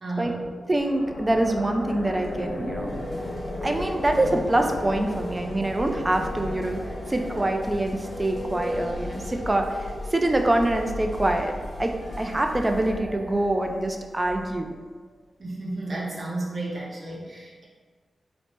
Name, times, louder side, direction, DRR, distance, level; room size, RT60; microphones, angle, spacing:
voice 1, 0.0-0.5 15.4-17.6, right 2 dB, 55° right, -4 dB, 0.8 m, -32 dB
sound 1, 0.7-14.8, left 1 dB, 80° left, 0.5 m, -35 dB
voice 2, 0.7-3.0 3.6-6.8 7.1-11.5 11.8-14.7, right 1 dB, 25° right, 4 dB, 0.4 m, -25 dB
sound 2, 2.9-12.9, left 1 dB, 35° left, 0.9 m, -44 dB
3.2 x 2.0 x 2.9 m, 1.5 s
cardioid pair, 45°, 0 cm